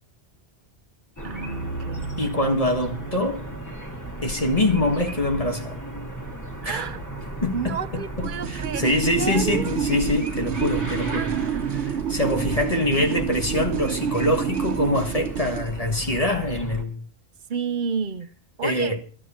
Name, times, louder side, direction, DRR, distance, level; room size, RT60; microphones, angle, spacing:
sound 1, 1.2-16.8, right 2 dB, 15° left, 2.1 m, -35 dB
voice 1, 1.2-2.2 6.6-7.0 7.5-9.8 11.0-12.1 12.5-12.6 17.5-18.3 18.6-18.9, right 6 dB, 50° right, 0.9 m, -31 dB
voice 2, 2.2-3.4 4.2-5.8 6.6-6.9 7.4-11.3 11.7-17.0 18.6-19.0, left 1 dB, 35° left, 1.6 m, -24 dB
sound 2, 8.2-15.7, right 9 dB, 85° right, 1.1 m, -29 dB
15.0 x 12.5 x 4.3 m
omnidirectional pair, 1.1 m